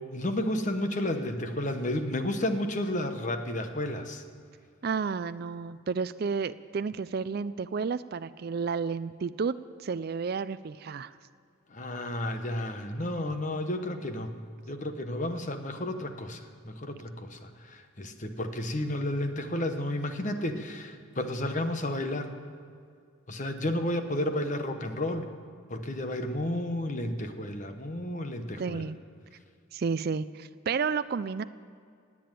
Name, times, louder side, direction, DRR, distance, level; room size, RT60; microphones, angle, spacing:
voice 1, 0.1-4.2 11.7-14.3 14.7-22.3 23.3-25.3 25.7-28.9, left 1 dB, 35° left, 7 dB, 1.1 m, -32 dB
voice 2, 4.8-9.6 9.8-11.1 28.6-29.0 29.7-31.4, right 5 dB, 45° right, 13 dB, 0.4 m, -31 dB
18.0 x 8.6 x 9.1 m, 2.3 s
head